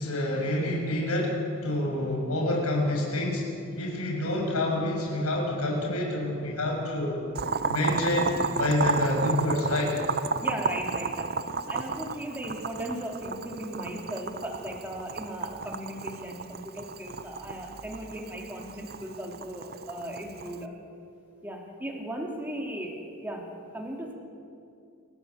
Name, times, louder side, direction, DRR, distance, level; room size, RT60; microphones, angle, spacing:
voice 1, 0.0-1.4 1.6-3.4 3.7-7.3 7.7-10.0, left 1 dB, 85° left, -1 dB, 6.7 m, -27 dB
Boiling, 7.3-20.6, right 5 dB, 45° right, 0.7 m, -33 dB
voice 2, 10.4-11.3 11.7-20.7 21.4-24.1, right 1 dB, 10° right, 0 dB, 3.3 m, -37 dB
29.5 x 16.0 x 8.4 m, 2.5 s
head